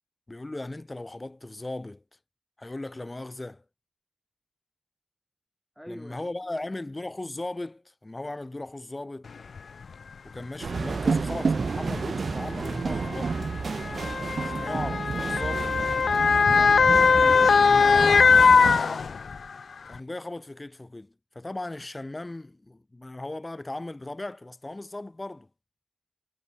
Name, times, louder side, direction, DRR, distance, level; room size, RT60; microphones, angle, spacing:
voice 1, 0.3-2.0 2.6-3.6 5.9-9.3 10.2-13.5 14.4-15.8 16.9-18.2 19.9-25.5, left 2 dB, 25° left, 4.0 m, -37 dB
voice 2, 5.8-6.7 16.5-17.4 18.2-19.2, equal, ahead, 4.8 m, -44 dB
Motor vehicle (road) / Siren, 9.6-9.7 10.6-10.8 11.9-19.5 19.9-20.0, left 5 dB, 65° left, 0.3 m, -21 dB
sound 1, 10.6-18.8, right 4 dB, 55° right, 1.2 m, -30 dB
cardioid pair, 60°, 0 cm